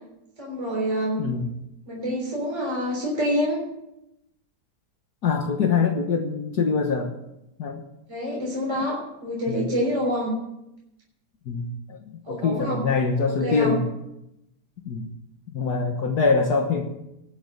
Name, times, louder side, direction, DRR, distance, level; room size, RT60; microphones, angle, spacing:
voice 1, 0.4-1.3 1.9-3.6 8.1-10.3 12.3-12.8 13.4-13.8, equal, 15° right, -3 dB, 3.6 m, -27 dB
voice 2, 1.2-1.5 5.2-7.1 7.6-7.8 9.5-9.7 11.5-12.0 12.3-13.9 14.9-15.1 15.5-16.8, left 4 dB, 65° left, 3 dB, 1.8 m, -24 dB
19.0 x 7.2 x 7.3 m, 0.87 s
omnidirectional pair, 1.8 m